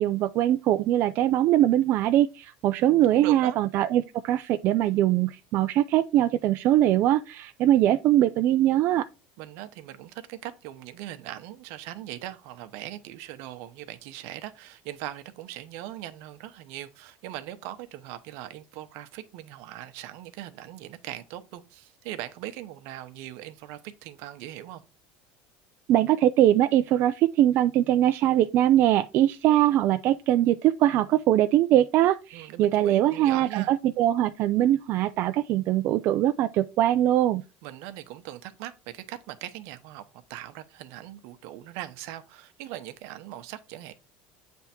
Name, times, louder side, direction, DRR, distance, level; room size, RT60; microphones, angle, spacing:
voice 1, 0.0-9.1 25.9-37.4, right 12 dB, 55° right, 0.4 m, -22 dB
voice 2, 2.8-3.6 9.4-24.8 32.3-33.7 37.6-43.9, right 13 dB, 70° right, 0.9 m, -40 dB
8.2 x 3.5 x 4.3 m
supercardioid pair, 115°, 5 cm